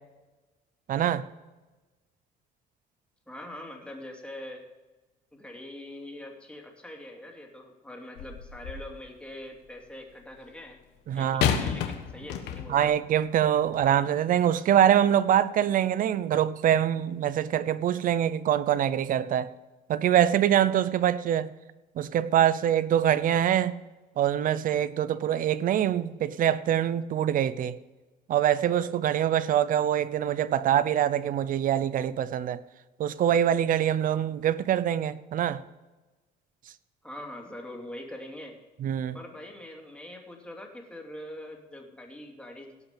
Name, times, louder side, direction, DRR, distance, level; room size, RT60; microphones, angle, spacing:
voice 1, 0.9-1.3 11.1-11.5 12.7-19.5 19.9-21.5 22.0-23.7 24.2-27.8 28.3-32.6 33.0-35.6 38.8-39.2, right 10 dB, 55° right, 0.7 m, -24 dB
voice 2, 3.3-4.7 5.3-10.8 11.1-12.9 37.0-38.6 39.1-42.9, left 1 dB, 5° left, 2.7 m, -43 dB
sound 1, 8.2-9.0 11.4-12.9 13.7-13.9, left 8 dB, 90° left, 1.3 m, -30 dB
17.5 x 5.9 x 5.2 m
cardioid pair, 110°, 17 cm